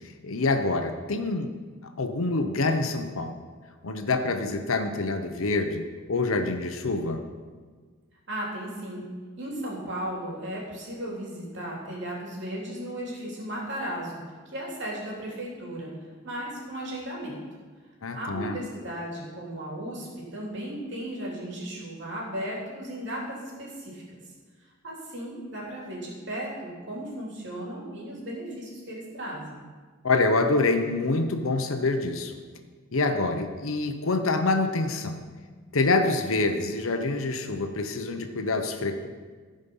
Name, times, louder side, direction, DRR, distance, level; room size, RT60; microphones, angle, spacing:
voice 1, 0.2-1.5 2.0-3.4 3.8-7.2 18.0-18.6 30.0-32.4 32.9-35.2 35.7-39.1, left 3 dB, 85° left, 6 dB, 0.9 m, -26 dB
voice 2, 8.3-9.0 9.4-14.2 14.4-15.9 16.2-17.4 18.1-24.2 24.8-29.6, right 1 dB, 60° right, -4 dB, 3.1 m, -35 dB
15.0 x 5.3 x 5.5 m, 1.5 s
head